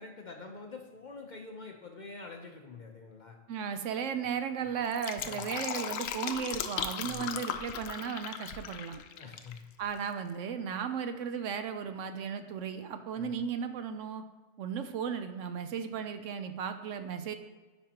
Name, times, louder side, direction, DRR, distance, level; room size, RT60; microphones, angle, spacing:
voice 1, 0.0-3.4 4.5-4.7 5.2-5.5 6.9-7.3 8.5-8.6 9.2-9.7 13.1-13.3, left 4 dB, 45° left, 2 dB, 0.7 m, -46 dB
voice 2, 3.5-9.0 9.8-14.2 14.6-17.3, right 7 dB, 75° right, 8 dB, 0.9 m, -35 dB
Fill (with liquid), 4.8-9.6 9.8-9.9, left 8 dB, 90° left, 1.0 m, -37 dB
9.8 x 5.2 x 2.9 m, 1.3 s
omnidirectional pair, 1.3 m